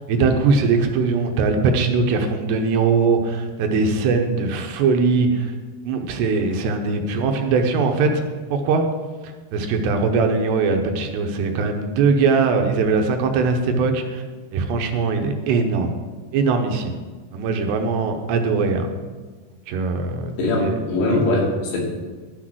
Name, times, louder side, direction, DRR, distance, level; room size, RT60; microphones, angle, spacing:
voice 1, 0.0-5.5 5.8-8.2 8.5-8.8 9.2-14.2 14.5-15.9 16.3-17.0 17.3-18.9 19.7-20.8 21.1-21.2, right 4 dB, 80° right, 4 dB, 2.9 m, -21 dB
voice 2, 20.4-21.8, left 2 dB, 80° left, -3 dB, 4.8 m, -21 dB
12.5 x 6.4 x 6.1 m, 1.4 s
omnidirectional pair, 5.0 m